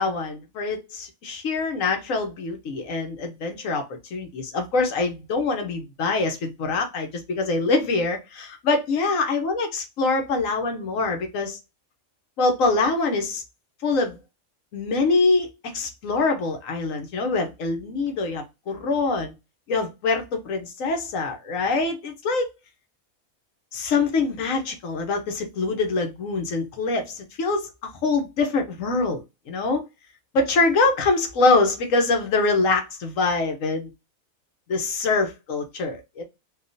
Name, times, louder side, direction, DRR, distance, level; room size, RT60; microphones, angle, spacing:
voice 1, 0.0-11.6 12.4-13.4 13.8-14.2 14.7-19.3 19.7-22.5 23.7-29.8 30.3-33.9 34.7-36.2, left 3 dB, 70° left, 1.1 m, -24 dB
3.5 x 2.3 x 2.5 m
omnidirectional pair, 1.5 m